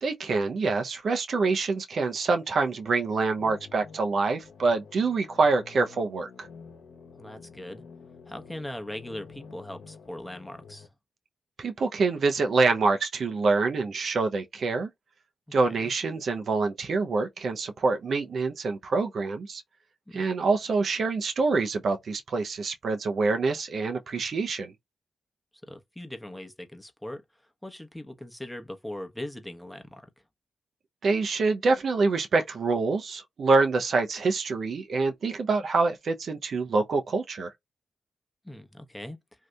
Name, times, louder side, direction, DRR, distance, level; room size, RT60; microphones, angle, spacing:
voice 1, 0.0-6.5 11.6-14.9 15.5-19.6 20.1-24.7 31.0-37.5, right 3 dB, 70° right, 0.6 m, -26 dB
sound 1, 3.4-10.9, left 5 dB, 85° left, 0.8 m, -49 dB
voice 2, 7.2-7.8 8.3-10.9 15.5-15.9 20.1-20.3 25.6-27.2 27.6-30.1 38.4-39.2, left 1 dB, 10° left, 0.9 m, -40 dB
2.7 x 2.4 x 3.3 m
cardioid pair, 50°, 0 cm